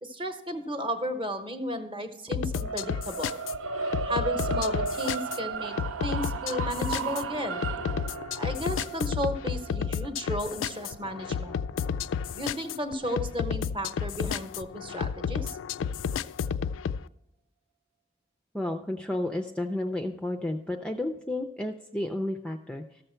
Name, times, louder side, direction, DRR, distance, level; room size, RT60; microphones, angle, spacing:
voice 1, 0.0-3.4 4.0-5.7 6.0-7.6 8.4-11.6 12.3-15.6, equal, 25° right, 8 dB, 0.9 m, -34 dB
sound 1, 2.3-17.0, left 7 dB, 75° left, 0.3 m, -32 dB
sound 2, 2.5-12.7, right 5 dB, 90° right, 0.6 m, -35 dB
voice 2, 18.5-23.0, left 1 dB, 5° left, 4 dB, 0.4 m, -32 dB
13.5 x 6.8 x 4.4 m, 0.90 s
head